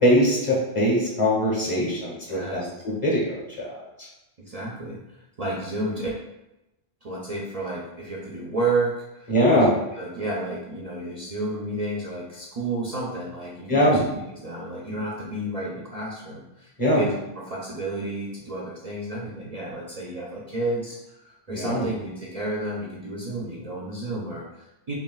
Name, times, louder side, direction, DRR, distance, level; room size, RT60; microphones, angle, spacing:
voice 1, 0.0-3.8 9.3-9.7 13.7-14.0 16.8-17.0 21.5-21.9, equal, 30° left, -4 dB, 1.2 m, -22 dB
voice 2, 2.3-2.8 4.5-6.2 7.0-9.6 9.9-24.9, right 2 dB, 40° right, -4 dB, 0.6 m, -31 dB
5.6 x 2.6 x 2.3 m, 0.92 s
omnidirectional pair, 1.1 m